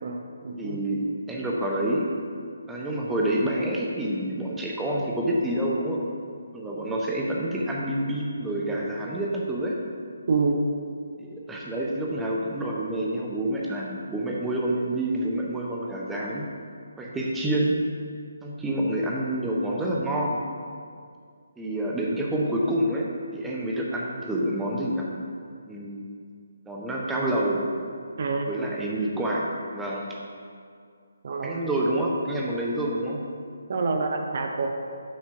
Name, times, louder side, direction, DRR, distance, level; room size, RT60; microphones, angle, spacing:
voice 1, 0.0-0.8 10.3-10.7 28.2-28.5 31.2-31.6 33.7-34.7, right 3 dB, 45° right, 3 dB, 0.6 m, -27 dB
voice 2, 0.6-2.1 2.7-6.0 6.5-9.7 11.2-16.5 17.0-17.8 18.4-20.4 21.6-25.0 25.7-26.0 26.7-27.6 28.5-30.1 31.4-33.2, right 1 dB, 5° right, -4 dB, 0.7 m, -28 dB
6.0 x 4.3 x 5.7 m, 2.2 s
figure-of-eight pair, 145°, 0 cm